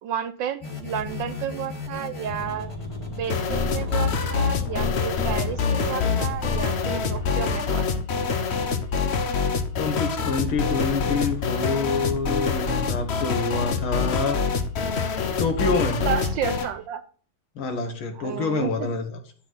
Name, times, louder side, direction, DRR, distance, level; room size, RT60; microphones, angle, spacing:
voice 1, 0.0-2.7 3.1-7.8 16.0-17.0 18.1-18.9, right 9 dB, 70° right, 11 dB, 1.2 m, -31 dB
sound 1, 0.6-7.4, left 3 dB, 15° left, 1.9 m, -35 dB
sound 2, 3.3-16.7, left 5 dB, 60° left, 0.7 m, -25 dB
voice 2, 9.7-14.4 15.4-16.0 17.6-19.2, left 4 dB, 75° left, 5 dB, 2.3 m, -27 dB
11.0 x 4.1 x 6.2 m, 0.43 s
omnidirectional pair, 2.3 m